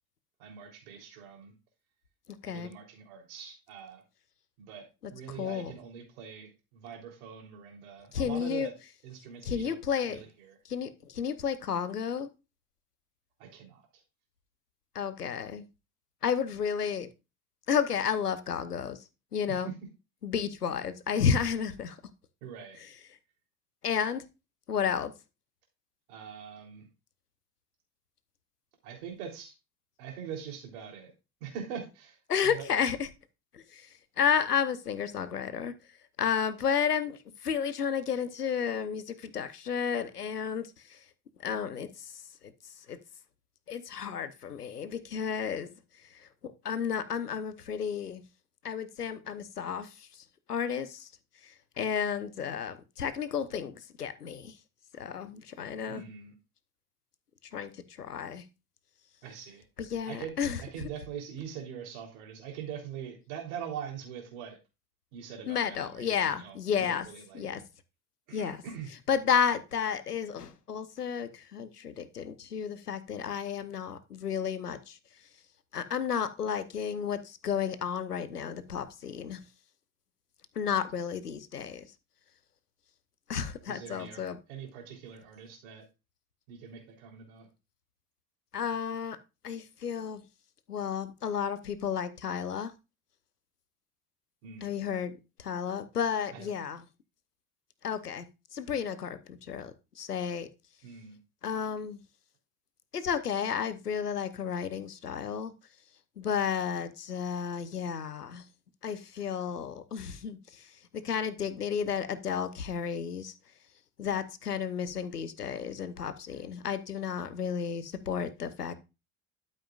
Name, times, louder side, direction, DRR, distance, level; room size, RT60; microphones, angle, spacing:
voice 1, 0.4-1.5 2.4-4.0 4.6-4.9 5.1-8.7 9.0-10.6 13.4-14.0 19.5-19.7 22.4-22.8 26.1-26.9 28.8-29.5 30.0-31.1 31.4-32.9 55.9-56.3 59.2-59.6 60.0-60.3 60.6-64.6 65.1-67.6 68.3-68.9 83.7-84.2 84.5-85.8 86.5-87.5 94.4-94.7 96.3-96.7 100.8-101.2, right 7 dB, 65° right, 2 dB, 3.6 m, -43 dB
voice 2, 5.4-5.7 8.1-8.7 9.4-10.2 10.7-12.3 14.9-15.6 16.2-17.1 17.7-19.0 19.3-19.7 20.2-22.0 22.8-22.9 23.8-24.2 24.7-25.1 32.3-33.1 33.5-33.9 34.2-35.7 36.2-41.0 41.4-42.1 42.9-43.0 43.7-45.7 46.6-48.2 48.6-51.1 51.4-51.5 51.8-54.5 54.9-56.0 57.5-57.7 58.0-58.4 59.8-60.6 65.5-67.1 67.3-67.6 68.3-68.6 69.1-75.0 75.7-79.4 80.6-81.9 83.3-84.4 88.5-89.2 89.4-90.2 90.7-92.7 94.6-95.1 95.4-96.8 97.8-98.2 98.5-100.5 101.4-102.0 102.9-105.5 106.2-108.4 108.8-110.7 111.0-113.3 114.0-118.8, left 7 dB, 85° left, 14 dB, 0.9 m, -32 dB
12.5 x 7.8 x 2.5 m, 0.27 s
figure-of-eight pair, 65°, 45 cm